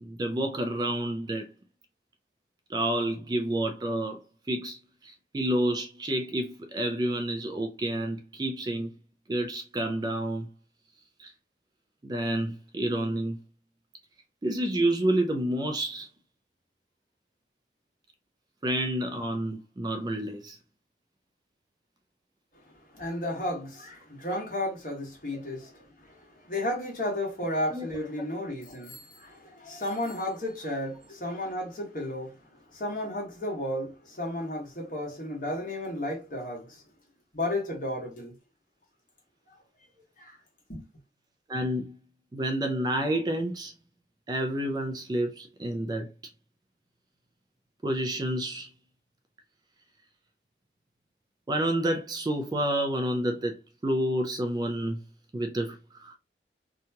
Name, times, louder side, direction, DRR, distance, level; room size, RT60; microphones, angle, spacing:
voice 1, 0.0-1.5 2.7-4.2 4.5-8.9 9.3-10.5 11.2-11.3 12.0-13.4 14.4-16.1 18.6-20.6 27.7-27.9 41.5-42.0 42.3-43.7 44.3-46.1 47.8-48.7 51.5-53.6 53.8-55.0 55.3-56.2, right 1 dB, 25° right, 0.3 m, -29 dB
voice 2, 22.9-36.8 37.3-38.3 40.2-40.4 40.7-40.8, left 1 dB, 50° left, 1.2 m, -33 dB
2.9 x 2.3 x 2.7 m
head